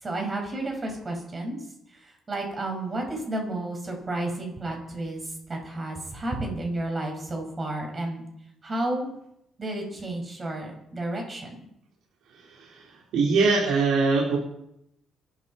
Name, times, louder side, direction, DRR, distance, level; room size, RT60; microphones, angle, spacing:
voice 1, 0.0-1.6 1.9-8.2 8.6-9.1 9.6-11.6, right 2 dB, 25° right, 2 dB, 5.5 m, -32 dB
voice 2, 12.3-14.4, right 4 dB, 85° right, -4 dB, 4.1 m, -23 dB
24.5 x 12.5 x 4.3 m, 0.78 s
cardioid pair, 140°, 0 cm